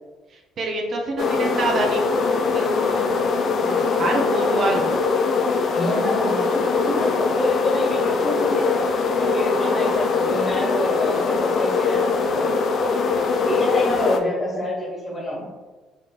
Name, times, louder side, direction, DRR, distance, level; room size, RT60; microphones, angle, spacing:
voice 1, 0.6-2.2 2.5-3.2 3.5-5.0 6.8-7.0, right 2 dB, 50° right, 1 dB, 0.5 m, -26 dB
sound 1, 1.2-14.2, left 4 dB, 55° left, 0.3 m, -22 dB
voice 2, 5.7-8.6 8.9-12.5 13.4-15.5, left 1 dB, 30° left, -4 dB, 1.5 m, -27 dB
3.4 x 3.2 x 2.4 m, 1.3 s
hypercardioid pair, 55°, 0 cm